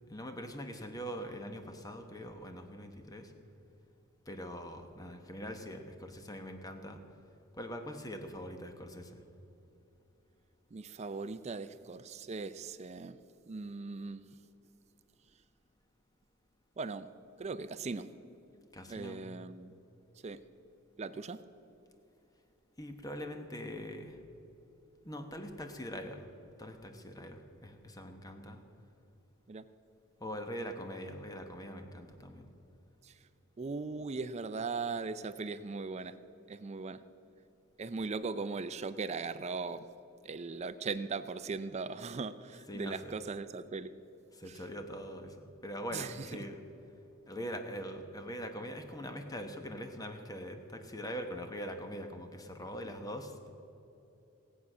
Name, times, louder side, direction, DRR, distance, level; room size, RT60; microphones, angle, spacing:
voice 1, 0.1-3.3 4.3-7.0 7.6-9.2 18.7-19.2 22.8-24.2 25.0-26.3 26.6-28.6 30.2-32.5 42.7-43.2 44.3-46.6 47.3-53.5, equal, 15° left, 6 dB, 1.0 m, -43 dB
voice 2, 10.7-13.2 13.5-14.2 16.8-17.1 17.4-18.1 18.9-19.7 20.2-20.4 21.0-21.4 29.5-29.6 33.0-33.1 33.6-36.1 36.5-37.0 37.8-39.9 40.2-43.9 44.4-44.6 45.9-46.3, right 4 dB, 30° right, 13 dB, 0.4 m, -39 dB
18.0 x 8.3 x 6.1 m, 2.9 s
head